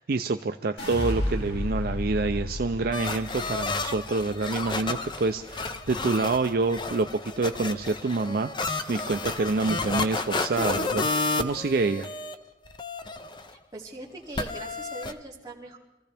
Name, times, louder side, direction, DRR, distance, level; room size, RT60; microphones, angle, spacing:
voice 1, 0.0-12.1, right 3 dB, 55° right, 7 dB, 0.4 m, -27 dB
sound 1, 0.8-7.0 7.3-7.9, left 1 dB, 85° left, 5.1 m, -34 dB
sound 2, 2.9-12.3 12.7-13.5 14.4-15.1, left 3 dB, 25° left, 0.6 m, -31 dB
voice 2, 13.5-15.8, right 2 dB, 20° right, -5 dB, 2.7 m, -41 dB
25.5 x 15.0 x 3.4 m, 0.99 s
head